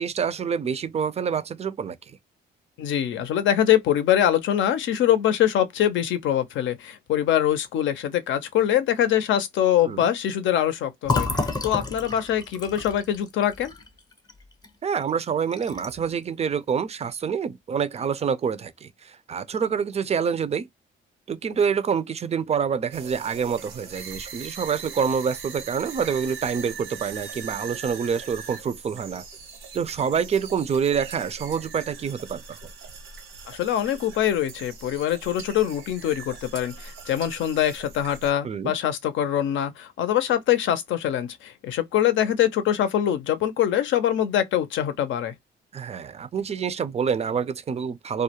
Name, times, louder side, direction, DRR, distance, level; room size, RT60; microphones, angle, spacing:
voice 1, 0.0-2.0 9.9-10.1 14.8-20.7 21.3-29.2 29.7-32.6 38.4-38.7 45.7-48.2, right 6 dB, 35° right, 0.4 m, -27 dB
voice 2, 2.8-11.3 11.6-13.7 33.5-45.3, left 11 dB, 75° left, 0.6 m, -23 dB
Fill (with liquid), 11.0-14.7 15.0-15.2 15.5-16.1, left 3 dB, 20° left, 0.6 m, -30 dB
sound 1, 22.9-38.3, right 5 dB, 85° right, 0.7 m, -41 dB
2.3 x 2.1 x 2.8 m
cardioid pair, 90°, 20 cm